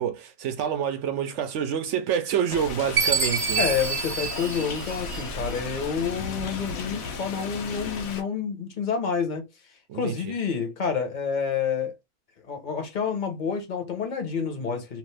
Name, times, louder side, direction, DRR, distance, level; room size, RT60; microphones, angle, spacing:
voice 1, 0.0-3.7 9.9-10.3, right 8 dB, 65° right, 0.8 m, -27 dB
sound 1, 2.5-8.2, left 4 dB, 80° left, 1.2 m, -35 dB
Chime, 3.0-5.5, right 5 dB, 35° right, 0.5 m, -27 dB
voice 2, 3.6-9.4 9.9-12.0 12.4-15.0, left 6 dB, 40° left, 0.8 m, -28 dB
3.0 x 2.5 x 3.2 m
omnidirectional pair, 1.5 m